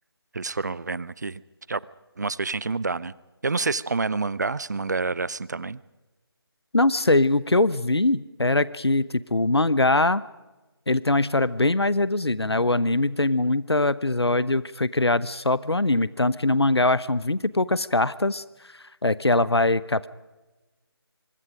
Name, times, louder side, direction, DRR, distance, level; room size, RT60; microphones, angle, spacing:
voice 1, 0.3-1.4 1.7-1.8 2.2-3.1 3.4-5.8, right 4 dB, 45° right, 21 dB, 0.6 m, -28 dB
voice 2, 6.7-10.2 10.9-20.1, left 2 dB, 80° left, 18 dB, 0.9 m, -22 dB
24.5 x 24.0 x 5.1 m, 1.1 s
figure-of-eight pair, 160°, 13 cm